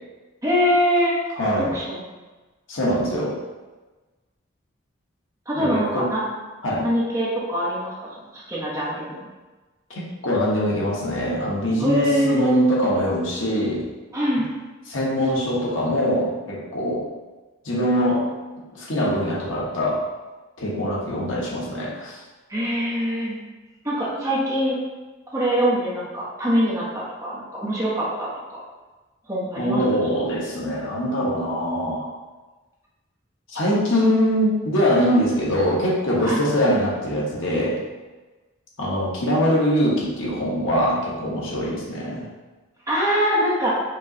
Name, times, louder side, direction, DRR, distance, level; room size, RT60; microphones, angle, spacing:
voice 1, 0.4-1.1 1.7-2.0 5.5-6.2 6.8-8.1 8.3-9.1 11.8-12.4 14.1-14.5 22.5-23.4 23.8-24.8 25.3-26.8 27.2-28.6 29.3-30.4 36.2-36.4 42.9-43.7, equal, 15° right, -7 dB, 1.0 m, -23 dB
voice 2, 1.4-1.7 2.7-3.3 5.6-6.1 6.6-6.9 9.9-13.9 14.9-17.0 17.6-18.3 18.7-20.0 20.6-22.2 29.6-32.1 33.5-37.8 38.8-42.3, equal, 80° left, -5 dB, 1.1 m, -23 dB
5.2 x 3.1 x 2.8 m, 1.2 s
head